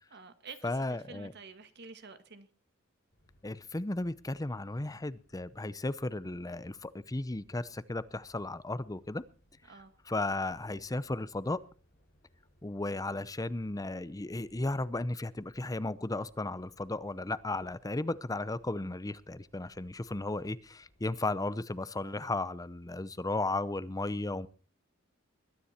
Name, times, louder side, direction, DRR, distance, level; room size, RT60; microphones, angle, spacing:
voice 1, 0.1-2.5 9.7-9.9, right 4 dB, 55° right, 1.9 m, -49 dB
voice 2, 0.6-1.3 3.4-9.2 10.1-11.6 12.6-24.5, left 2 dB, 20° left, 0.7 m, -35 dB
sound 1, 3.1-21.5, equal, 50° left, 6.0 m, -67 dB
21.0 x 10.0 x 4.4 m
head